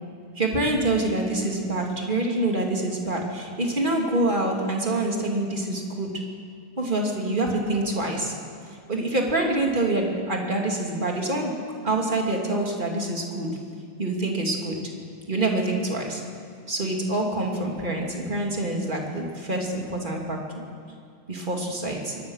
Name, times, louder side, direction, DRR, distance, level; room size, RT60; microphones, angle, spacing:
voice 1, 0.3-6.1 6.8-8.3 8.9-11.5 11.8-13.5 14.0-14.8 15.3-16.2 16.7-20.7 21.3-22.2, right 2 dB, 35° right, 0 dB, 2.9 m, -26 dB
22.5 x 18.0 x 6.5 m, 2.3 s
omnidirectional pair, 1.6 m